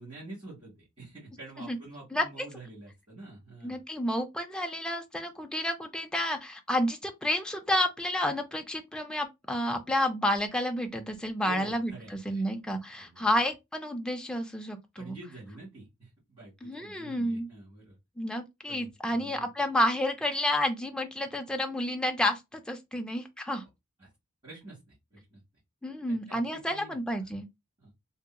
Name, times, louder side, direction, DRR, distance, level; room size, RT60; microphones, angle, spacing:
voice 1, 0.0-3.8 11.4-12.5 13.0-13.4 14.9-18.0 18.7-19.4 24.0-24.1 24.4-25.4 26.1-27.3 27.8-27.9, right 2 dB, 25° right, 1.5 m, -48 dB
voice 2, 3.6-15.2 16.6-17.5 18.2-23.6 25.8-27.5, left 1 dB, 5° left, 0.4 m, -30 dB
2.7 x 2.7 x 2.2 m
head